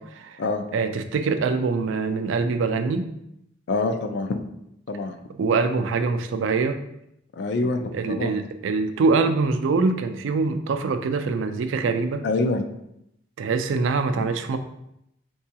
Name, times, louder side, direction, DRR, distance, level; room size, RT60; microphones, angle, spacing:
voice 1, 0.7-3.1 5.4-6.8 7.9-12.2 13.4-14.6, right 4 dB, 90° right, 8 dB, 0.3 m, -24 dB
voice 2, 3.7-4.4 4.9-5.2 7.3-8.4 12.2-12.6, left 3 dB, 65° left, 7 dB, 0.4 m, -25 dB
4.6 x 2.3 x 2.8 m, 0.80 s
head